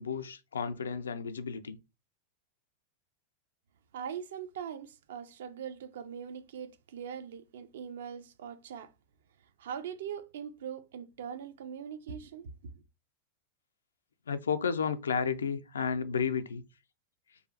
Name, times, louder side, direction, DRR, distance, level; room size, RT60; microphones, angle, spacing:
voice 1, 0.0-1.8 14.3-16.6, left 6 dB, 70° left, 0.4 m, -32 dB
voice 2, 3.9-8.9 9.6-12.8, right 8 dB, 60° right, 0.4 m, -41 dB
2.7 x 2.4 x 3.9 m
figure-of-eight pair, 90°, 0 cm